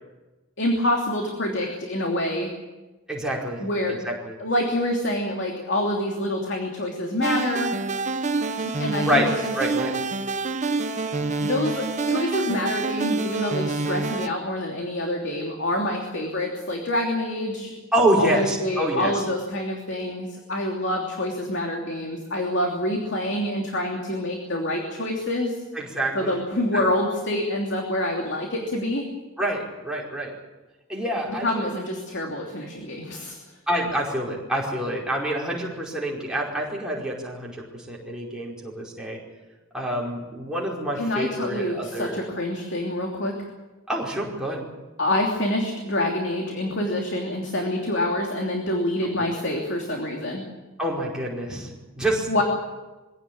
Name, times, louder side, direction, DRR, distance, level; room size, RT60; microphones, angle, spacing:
voice 1, 0.6-2.5 3.6-4.0 4.4-7.7 8.6-9.3 11.4-17.8 18.2-25.6 26.1-29.0 31.4-33.4 41.0-43.3 45.0-50.4 52.3-52.4, left 1 dB, 55° left, 1 dB, 3.0 m, -26 dB
voice 2, 3.1-3.6 3.9-4.3 9.0-9.3 9.5-9.9 17.9-19.1 25.7-26.4 26.7-26.8 29.4-30.3 30.9-31.5 33.7-39.2 39.7-42.3 43.9-44.7 50.8-52.3, right 1 dB, 5° right, -4 dB, 5.0 m, -27 dB
sound 1, 7.2-14.3, right 3 dB, 35° right, 1.0 m, -27 dB
23.5 x 16.5 x 8.8 m, 1.1 s
head